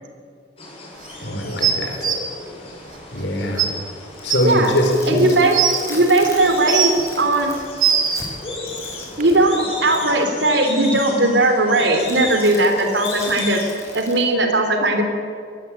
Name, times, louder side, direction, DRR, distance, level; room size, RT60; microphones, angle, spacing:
sound 1, 0.6-14.0, left 2 dB, 35° left, 7.9 m, -34 dB
voice 1, 1.2-2.1 3.1-3.7 4.2-5.3, left 1 dB, 80° left, 2 dB, 4.8 m, -22 dB
sound 2, 1.6-2.2 3.2-3.3 3.6-3.7 4.3-4.4 5.2-5.8 6.4-7.1 7.6-8.2 9.2-9.3, right 8 dB, 50° right, 3.2 m, -19 dB
sound 3, 4.0-10.2 12.0-14.2, left 2 dB, 15° left, 6.2 m, -39 dB
voice 2, 5.1-5.5 5.9-7.5 9.2-13.6 13.9-15.0, right 2 dB, 80° right, 5 dB, 3.6 m, -18 dB
24.5 x 19.0 x 9.1 m, 2.3 s
head